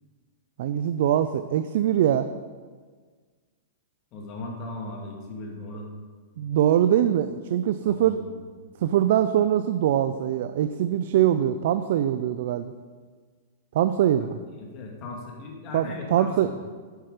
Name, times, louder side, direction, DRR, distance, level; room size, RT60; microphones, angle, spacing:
voice 1, 0.6-2.3 6.4-8.2 8.8-12.7 13.7-14.4 15.7-16.5, right 11 dB, 65° right, 10 dB, 0.3 m, -23 dB
voice 2, 4.1-5.9 7.8-8.4 14.5-16.6, left 2 dB, 35° left, 0 dB, 1.9 m, -38 dB
8.0 x 5.9 x 4.9 m, 1.5 s
hypercardioid pair, 135°, 0 cm